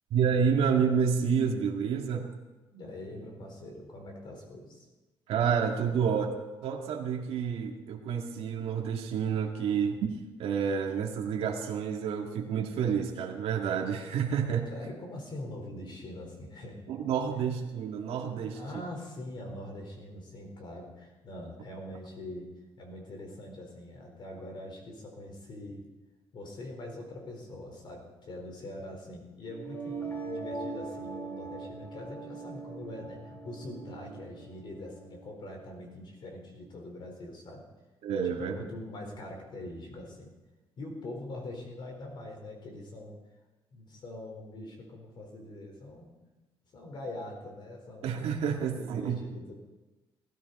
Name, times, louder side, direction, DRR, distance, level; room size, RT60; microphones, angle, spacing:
voice 1, 0.1-2.3 5.3-6.3 6.6-14.7 16.9-18.6 38.0-38.5 48.0-49.2, right 7 dB, 80° right, 1 dB, 1.8 m, -29 dB
voice 2, 2.7-4.9 14.7-16.8 17.3-17.4 18.5-22.5 22.8-25.8 26.3-37.6 38.2-40.3 40.8-43.2 43.7-46.2 46.7-48.2 48.6-49.5, left 1 dB, 50° left, 1 dB, 4.2 m, -43 dB
sound 1, 29.5-35.5, right 3 dB, 25° left, 2.4 m, -41 dB
19.0 x 13.5 x 4.2 m, 1.1 s
cardioid pair, 120°, 10 cm